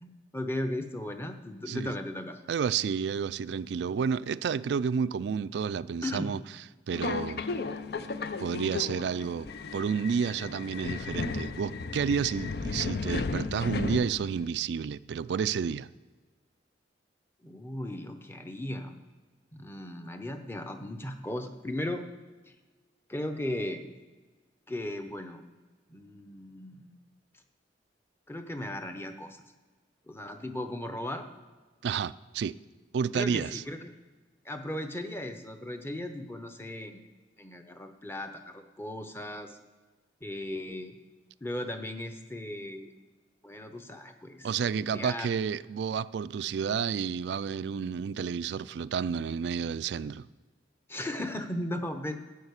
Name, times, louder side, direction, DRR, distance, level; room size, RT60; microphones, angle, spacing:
voice 1, 0.0-2.4 6.0-6.3 17.4-18.9 19.5-22.0 23.1-23.9 24.7-25.4 25.9-26.9 28.3-29.4 30.1-31.3 33.1-33.9 34.4-37.0 37.4-39.6 40.2-40.9 41.4-42.9 43.4-44.5 44.8-45.3 50.9-52.2, left 1 dB, 15° left, 0.7 m, -36 dB
voice 2, 2.5-6.4 6.9-7.4 8.4-15.9 31.8-32.6 32.9-33.6 44.4-50.3, right 6 dB, 65° right, 0.3 m, -30 dB
Subway metro underground, 6.9-14.5, left 4 dB, 55° left, 0.5 m, -34 dB
11.5 x 5.6 x 8.1 m
head